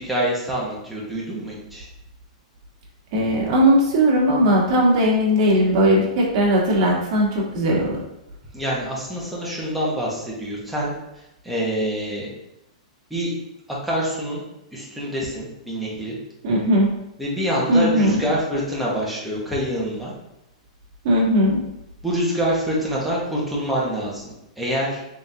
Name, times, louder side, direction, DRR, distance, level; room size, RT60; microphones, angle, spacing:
voice 1, 0.0-1.9 8.5-10.9 11.4-12.3 13.1-13.3 13.8-14.4 14.7-16.2 17.2-20.1 22.0-25.0, equal, ahead, -6 dB, 1.1 m, -26 dB
voice 2, 3.1-8.0 16.4-16.9 17.7-18.2 21.0-21.6, equal, 45° right, -3 dB, 1.4 m, -18 dB
3.8 x 3.6 x 2.8 m, 0.88 s
hypercardioid pair, 140°, 4 cm